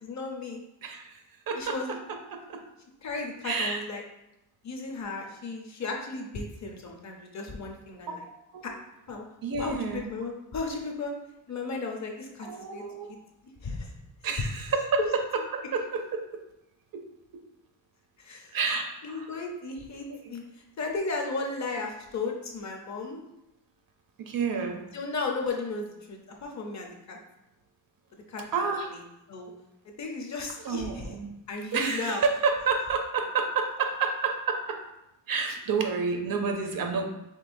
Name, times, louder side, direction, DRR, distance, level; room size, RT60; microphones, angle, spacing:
voice 1, 0.0-0.6 1.6-2.0 3.0-4.0 4.6-8.2 8.6-8.7 9.1-9.3 9.6-11.1 11.5-12.8 13.6-13.9 15.0-15.1 18.2-18.5 19.0-20.4 20.8-23.2 24.9-27.2 28.3-28.4 28.9-29.0 29.3-29.5 30.0-31.1 31.5-32.2, left 3 dB, 40° left, 1 dB, 0.6 m, -34 dB
voice 2, 0.8-1.2 1.5-2.6 3.4-3.8 8.5-8.7 9.4-10.1 12.4-13.1 14.2-15.2 15.5-16.4 16.9-17.0 18.5-19.3 20.1-20.3 24.3-24.8 28.5-28.9 30.6-31.3 31.7-34.8 35.3-37.1, right 5 dB, 50° right, 4 dB, 0.6 m, -29 dB
5.4 x 3.5 x 2.6 m, 0.88 s
wide cardioid pair, 165°, 45 cm